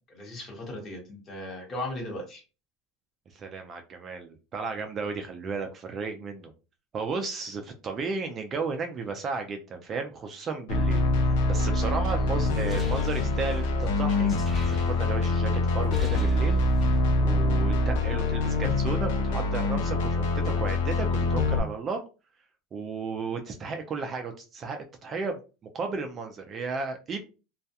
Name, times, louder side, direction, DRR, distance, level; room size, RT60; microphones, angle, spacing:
voice 1, 0.1-2.4, left 1 dB, 30° left, 1 dB, 1.1 m, -37 dB
voice 2, 3.3-6.5 6.9-14.3 14.6-16.6 17.2-22.0 22.7-27.2, right 4 dB, 30° right, 5 dB, 0.4 m, -34 dB
sound 1, 10.7-21.6, left 2 dB, 85° left, 0.6 m, -25 dB
sound 2, 12.4-15.4 15.7-17.0, left 2 dB, 5° right, 0.8 m, -37 dB
2.3 x 2.2 x 2.7 m, 0.32 s
supercardioid pair, 140°, 0 cm